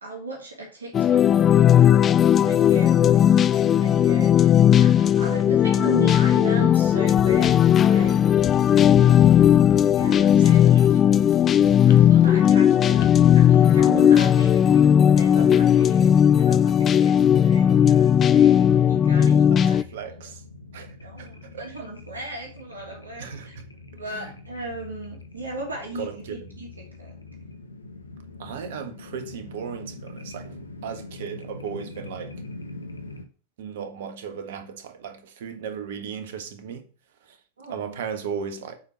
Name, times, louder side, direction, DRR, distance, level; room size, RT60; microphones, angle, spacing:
voice 1, 0.0-1.2 1.7-8.3 9.9-10.7 11.9-13.1 13.3-19.9 20.2-20.3 21.0-23.5 23.9-27.1 37.6-38.0, right 1 dB, 75° right, 2.8 m, -36 dB
sound 1, 0.9-19.8, left 9 dB, 25° left, 0.4 m, -17 dB
sound 2, 6.8-14.1, left 10 dB, 50° left, 1.1 m, -37 dB
voice 2, 8.9-9.3 10.7-11.2 19.2-20.4 20.7-21.3 21.5-21.7 23.2-23.6 24.1-24.3 26.0-26.5 28.4-32.3 33.6-36.8 37.3-37.4 37.7-38.8, right 7 dB, 55° right, 1.5 m, -36 dB
sound 3, 14.1-33.2, left 2 dB, 80° left, 1.2 m, -43 dB
7.7 x 4.8 x 6.7 m
figure-of-eight pair, 90°, 0 cm